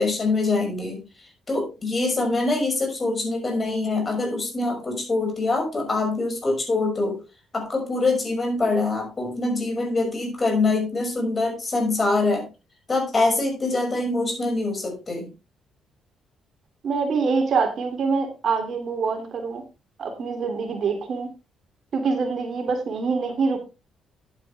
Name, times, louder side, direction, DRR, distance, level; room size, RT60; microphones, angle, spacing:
voice 1, 0.0-7.2 7.5-12.5 12.9-15.3, left 3 dB, 30° left, 3 dB, 6.0 m, -24 dB
voice 2, 16.8-19.6 20.0-21.3 21.9-23.7, right 4 dB, 55° right, 5 dB, 2.7 m, -25 dB
10.5 x 9.4 x 3.4 m, 0.28 s
cardioid pair, 90°, 0 cm